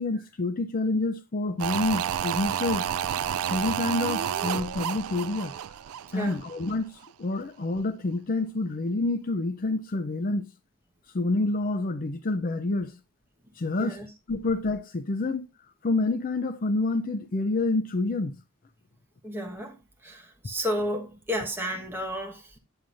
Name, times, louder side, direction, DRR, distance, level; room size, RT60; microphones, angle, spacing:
voice 1, 0.0-2.9 3.5-5.5 6.1-6.9 7.2-10.4 11.1-13.0 13.6-14.0 14.3-15.4 15.8-18.4, left 2 dB, 40° left, 0.5 m, -28 dB
sound 1, 1.6-6.8 7.0-7.1, right 9 dB, 85° right, 0.3 m, -30 dB
voice 2, 19.2-19.7 20.0-22.6, equal, 10° right, 1.3 m, -32 dB
8.8 x 7.6 x 2.6 m
head